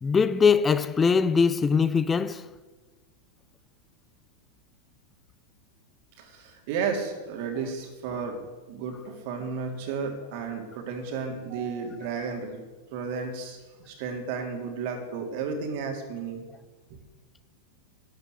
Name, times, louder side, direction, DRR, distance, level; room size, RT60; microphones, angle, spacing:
voice 1, 0.0-2.4, left 5 dB, 15° left, 0.6 m, -22 dB
voice 2, 6.2-8.4 8.7-12.6 12.9-16.4, right 5 dB, 45° right, 3.2 m, -33 dB
12.5 x 10.0 x 8.4 m
figure-of-eight pair, 90°, 0 cm